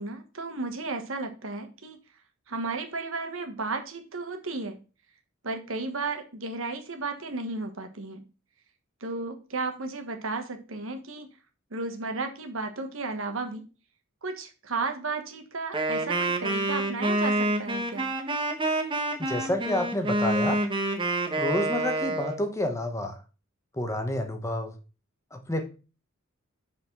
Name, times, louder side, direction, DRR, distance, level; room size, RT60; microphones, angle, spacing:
voice 1, 0.0-2.0 2.5-4.7 5.4-8.2 9.0-11.3 11.7-13.6 14.2-18.1, right 3 dB, 65° right, 6 dB, 1.3 m, -34 dB
Wind instrument woodwind instrument, 15.7-22.4, right 2 dB, 25° right, 1.1 m, -27 dB
voice 2, 19.2-20.6 21.4-23.2 23.7-24.7 25.3-25.7, left 1 dB, 15° left, 6 dB, 1.0 m, -29 dB
5.8 x 5.0 x 6.0 m, 0.33 s
head